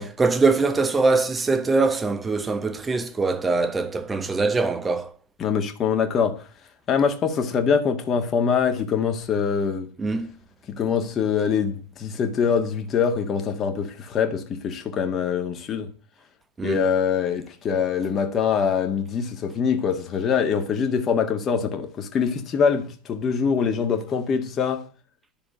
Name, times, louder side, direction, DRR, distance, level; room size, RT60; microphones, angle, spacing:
voice 1, 0.0-5.1 10.0-10.3 16.6-16.8, right 3 dB, 15° right, 1.4 m, -23 dB
voice 2, 5.4-6.4 6.9-9.9 10.7-15.9 16.6-24.9, left 6 dB, 25° left, 1.9 m, -24 dB
11.0 x 6.7 x 9.5 m
figure-of-eight pair, 90°, 0 cm